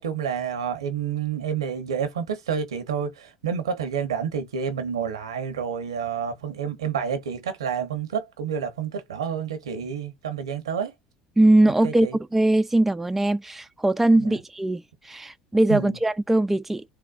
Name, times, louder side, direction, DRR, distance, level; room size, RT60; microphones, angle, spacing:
voice 1, 0.0-10.9 11.8-12.2 14.2-14.4 15.7-16.0, right 7 dB, 85° right, 0.8 m, -29 dB
voice 2, 11.4-16.8, right 1 dB, 10° right, 0.3 m, -21 dB
3.5 x 2.1 x 2.4 m
hypercardioid pair, 75°, 3 cm